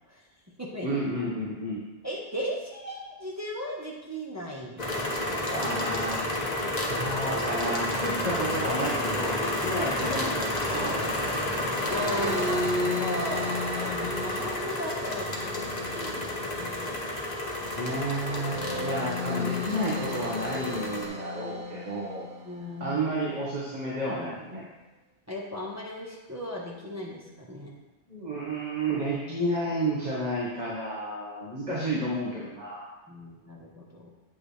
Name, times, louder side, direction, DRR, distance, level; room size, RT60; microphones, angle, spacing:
voice 1, 0.8-1.8 5.5-6.2 6.9-11.3 17.5-22.2 22.8-24.6 28.1-32.9, right 1 dB, 40° right, -6 dB, 1.6 m, -31 dB
voice 2, 2.0-5.1 5.4-5.5 11.9-12.7 13.0-17.0 22.4-23.0 25.3-27.7 33.1-34.1, left 1 dB, 15° right, -4 dB, 1.3 m, -36 dB
sound 1, 4.8-21.1, left 1 dB, 40° left, 1.2 m, -31 dB
sound 2, 11.7-23.0, left 1 dB, 60° right, 1.1 m, -35 dB
8.4 x 8.1 x 3.4 m, 1.1 s
omnidirectional pair, 1.1 m